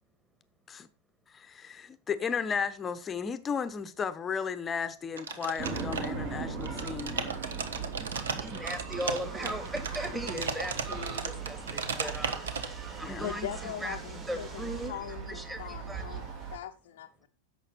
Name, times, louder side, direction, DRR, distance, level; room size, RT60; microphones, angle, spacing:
voice 1, 1.3-7.2 13.0-13.4, left 6 dB, 20° left, 1.0 m, -34 dB
sound 1, 5.2-6.3 6.6-12.7, right 5 dB, 65° right, 1.2 m, -35 dB
sound 2, 5.6-16.6, right 5 dB, 50° right, 4.2 m, -39 dB
voice 2, 8.3-12.4 13.0-14.0 14.3-15.0 15.3-16.0, equal, 10° right, 2.1 m, -38 dB
sound 3, 9.0-14.9, right 3 dB, 25° right, 3.3 m, -50 dB
voice 3, 13.2-17.3, left 11 dB, 55° left, 0.7 m, -41 dB
11.0 x 7.5 x 4.2 m
figure-of-eight pair, 90°, 0 cm